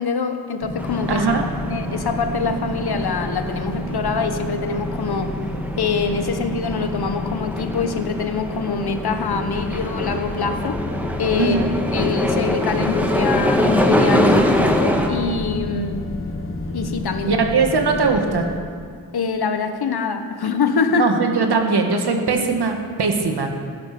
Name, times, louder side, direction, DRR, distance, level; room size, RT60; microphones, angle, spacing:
voice 1, 0.0-1.3 1.7-5.3 5.8-10.8 11.2-11.6 11.9-16.0 16.7-17.4 19.1-21.1, left 5 dB, 75° left, 7 dB, 1.3 m, -24 dB
sound 1, 0.6-18.6, left 1 dB, 35° left, 1.2 m, -30 dB
sound 2, 0.8-15.1, left 1 dB, 5° right, 1.9 m, -24 dB
voice 2, 11.4-11.7 17.2-18.5 20.9-23.6, right 4 dB, 90° right, 3 dB, 1.8 m, -20 dB
16.0 x 11.0 x 6.1 m, 2.1 s
wide cardioid pair, 80°, 38 cm